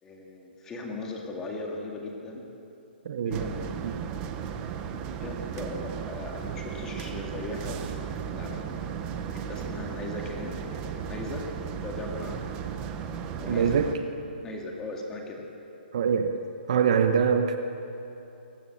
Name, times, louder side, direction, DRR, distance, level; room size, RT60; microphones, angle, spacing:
voice 1, 0.0-2.5 3.3-4.1 5.2-8.0 8.3-9.0 9.3-12.8 13.4-13.8 14.4-15.4 16.3-16.4, left 2 dB, 10° left, 0 dB, 2.1 m, -38 dB
voice 2, 3.0-3.5 3.8-3.9 13.5-13.9 15.9-16.4 16.7-17.6, right 7 dB, 40° right, 7 dB, 1.1 m, -24 dB
sound 1, 3.3-14.0, right 7 dB, 15° right, 1.0 m, -35 dB
23.0 x 18.0 x 8.7 m, 2.9 s
hypercardioid pair, 175°, 6 cm